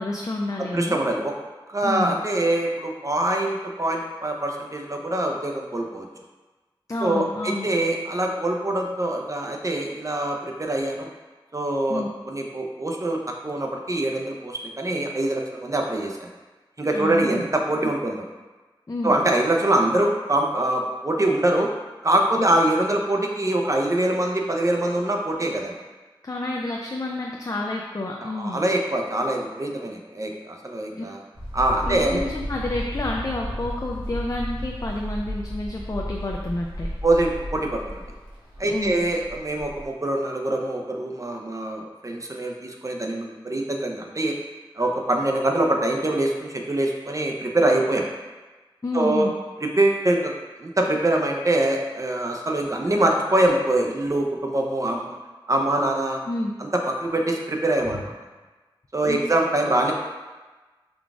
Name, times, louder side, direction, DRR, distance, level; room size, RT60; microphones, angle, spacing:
voice 1, 0.0-1.0 1.8-2.1 6.9-7.7 11.9-12.1 16.9-17.5 18.9-19.1 26.2-28.6 31.0-31.1 31.9-36.9 38.7-39.0 48.8-49.3 56.3-56.5 57.9-58.0 59.1-59.2, left 2 dB, 40° left, -1 dB, 0.3 m, -29 dB
voice 2, 0.6-1.3 1.7-6.1 7.0-11.1 11.5-16.3 16.8-18.2 19.0-21.7 22.0-25.8 28.2-31.2 31.5-32.2 37.0-38.0 38.6-44.3 44.8-48.1 48.9-49.3 49.8-50.3 50.6-55.2 55.5-56.2 56.6-58.1 58.9-59.9, right 1 dB, 35° right, 1 dB, 0.5 m, -24 dB
sound 1, 31.3-39.9, equal, 75° right, 1.0 m, -33 dB
3.8 x 2.3 x 3.5 m, 1.2 s
wide cardioid pair, 55°, 9 cm